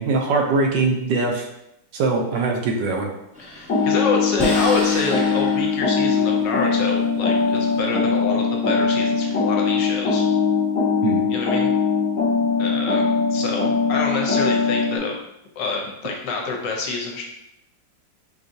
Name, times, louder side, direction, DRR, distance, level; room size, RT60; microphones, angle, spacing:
voice 1, 0.0-1.5 1.9-3.1 11.0-11.2, right 3 dB, 75° right, 2 dB, 1.2 m, -21 dB
sound 1, 3.3-8.0, equal, 10° right, 0.4 m, -34 dB
voice 2, 3.4-10.3 11.3-11.7 12.6-15.2 15.6-17.2, left 4 dB, 75° left, 0 dB, 1.3 m, -27 dB
sound 2, 3.7-15.0, left 5 dB, 40° left, 1.1 m, -21 dB
4.7 x 2.6 x 2.6 m, 0.82 s
omnidirectional pair, 2.0 m